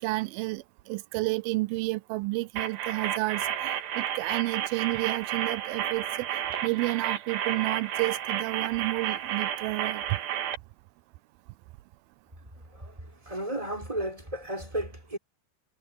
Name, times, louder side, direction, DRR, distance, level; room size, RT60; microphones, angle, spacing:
voice 1, 0.0-6.3 6.6-10.2, right 22 dB, 85° right, 2.1 m, -30 dB
sound 1, 2.6-10.6, right 10 dB, 65° right, 3.0 m, -32 dB
voice 2, 13.3-15.2, right 1 dB, 10° right, 4.3 m, -33 dB
omnidirectional pair, 4.9 m